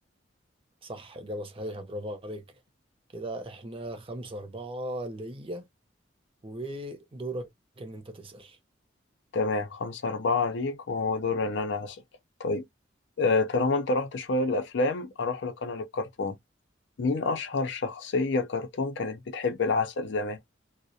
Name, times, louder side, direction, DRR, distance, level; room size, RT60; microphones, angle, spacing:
voice 1, 0.8-2.4 3.1-5.7 6.4-7.5 7.8-8.6, right 1 dB, 30° right, 0.6 m, -37 dB
voice 2, 9.3-12.0 12.4-12.6 13.2-16.4 17.0-20.4, left 3 dB, 65° left, 0.5 m, -28 dB
2.3 x 2.0 x 2.6 m
head